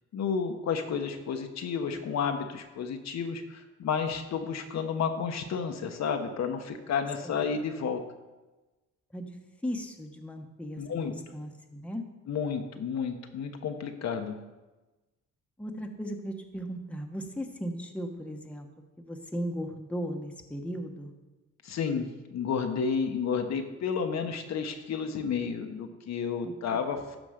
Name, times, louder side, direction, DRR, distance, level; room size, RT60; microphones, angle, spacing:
voice 1, 0.1-8.0 10.8-11.1 12.3-14.3 21.6-27.2, left 6 dB, 60° left, 5 dB, 1.0 m, -31 dB
voice 2, 9.6-12.0 15.6-18.7 19.0-21.1 26.7-26.8, equal, 5° left, 3 dB, 1.1 m, -36 dB
12.5 x 5.2 x 5.0 m, 1.1 s
cardioid pair, 90°, 30 cm